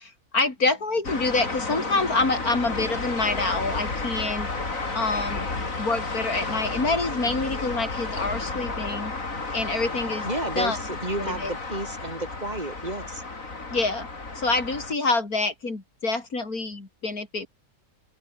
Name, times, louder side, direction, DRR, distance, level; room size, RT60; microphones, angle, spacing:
voice 1, 0.0-4.5 4.9-9.1 9.5-10.8 11.2-11.5 13.7-14.1 14.3-17.5, left 3 dB, 80° left, 4.7 m, -27 dB
sound 1, 1.0-14.9, left 3 dB, 60° left, 4.1 m, -32 dB
voice 2, 10.2-13.2, right 1 dB, 25° right, 5.2 m, -32 dB
open air
omnidirectional pair, 1.5 m